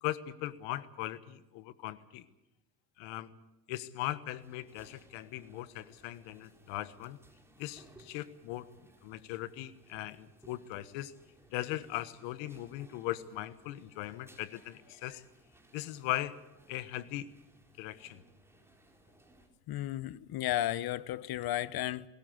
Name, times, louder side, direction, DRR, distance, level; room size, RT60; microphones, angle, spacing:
voice 1, 0.0-2.3 3.0-3.3 3.7-7.2 7.6-8.7 9.0-11.1 11.5-15.2 15.7-16.3 16.7-17.3 17.8-18.2, left 15 dB, 80° left, 1.3 m, -39 dB
sound 1, 4.4-19.5, right 2 dB, 5° right, 4.1 m, -62 dB
voice 2, 19.7-22.1, left 13 dB, 55° left, 0.9 m, -33 dB
20.5 x 17.5 x 8.0 m
supercardioid pair, 95°, 45 cm